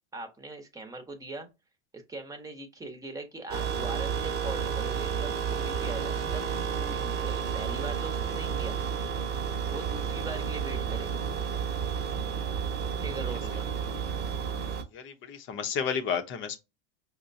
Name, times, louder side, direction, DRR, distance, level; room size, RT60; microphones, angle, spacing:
voice 1, 0.1-1.5 1.9-8.8 9.7-11.2 13.0-13.7, right 2 dB, 10° right, 1.0 m, -41 dB
sound 1, 3.5-14.8, right 7 dB, 35° right, 1.0 m, -31 dB
voice 2, 14.9-16.6, left 7 dB, 40° left, 0.9 m, -32 dB
5.6 x 2.2 x 2.6 m
supercardioid pair, 115°, 29 cm